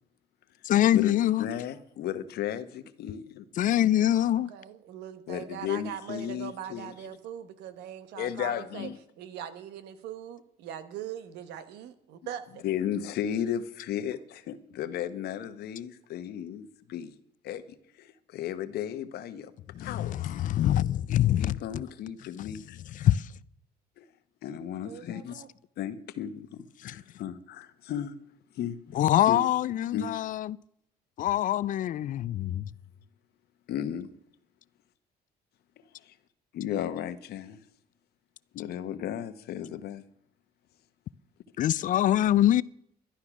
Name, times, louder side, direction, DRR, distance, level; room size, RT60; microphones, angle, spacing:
voice 1, 0.6-1.5 3.6-4.5 19.7-21.8 22.4-23.3 26.8-26.9 28.9-30.6 31.2-32.7 41.6-42.6, left 12 dB, 50° left, 0.4 m, -25 dB
voice 2, 1.4-3.4 5.3-6.9 8.2-9.0 12.6-17.1 17.4-17.6 18.0-19.5 19.8-20.3 21.4-22.8 24.0-24.1 24.4-25.3 25.8-28.1 28.5-28.8 29.3-29.4 29.9-30.2 32.6-32.7 33.7-34.1 36.1-36.2 36.5-37.6 38.5-40.0, left 10 dB, 70° left, 1.0 m, -34 dB
voice 3, 4.3-8.9 9.2-12.6 24.8-25.5, right 10 dB, 85° right, 1.2 m, -41 dB
12.0 x 11.5 x 6.1 m
cardioid pair, 110°, 17 cm